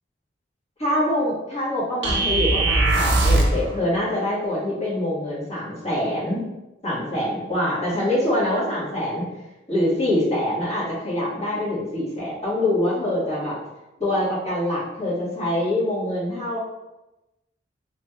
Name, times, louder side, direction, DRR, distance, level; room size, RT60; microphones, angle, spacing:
voice 1, 0.8-6.4 6.8-9.3 9.7-13.6 14.0-16.6, left 1 dB, 35° left, -9 dB, 1.4 m, -24 dB
sound 1, 2.0-3.6, right 2 dB, 85° right, 0.6 m, -19 dB
3.2 x 2.9 x 2.2 m, 0.99 s
head